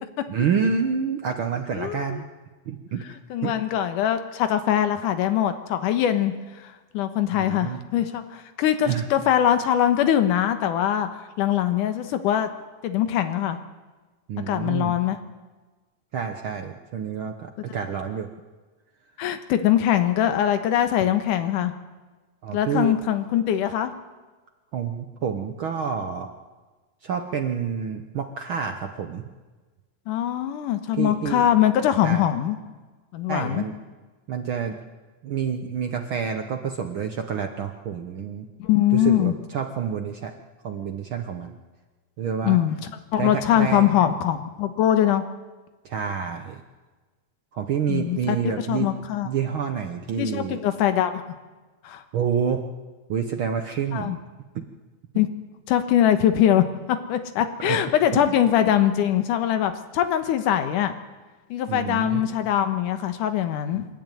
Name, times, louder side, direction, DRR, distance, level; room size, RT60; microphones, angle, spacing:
voice 1, 0.3-2.2 2.7-3.5 7.4-7.8 8.9-9.1 14.3-14.9 16.1-18.3 22.4-23.0 24.7-26.3 27.0-29.3 31.0-31.5 32.0-32.2 33.3-33.7 34.3-34.8 35.2-38.5 38.9-40.3 40.6-41.6 42.2-42.6 43.2-43.9 45.8-46.6 47.5-48.9 49.2-50.6 52.1-52.7 53.1-54.2 54.5-54.6 55.1-55.2 57.6-57.8 58.1-58.2 61.7-62.3, right 7 dB, 80° right, 5 dB, 1.1 m, -28 dB
voice 2, 1.7-2.2 3.3-12.5 12.8-13.6 14.5-15.2 19.2-21.7 22.5-23.9 30.1-32.6 33.1-33.6 38.6-39.3 42.4-42.8 43.1-45.2 47.9-49.3 50.2-51.2 51.8-52.0 53.9-54.2 55.2-55.3 55.7-60.9 61.5-63.9, left 11 dB, 75° left, 9 dB, 2.7 m, -22 dB
27.0 x 11.5 x 9.2 m, 1.3 s
omnidirectional pair, 3.8 m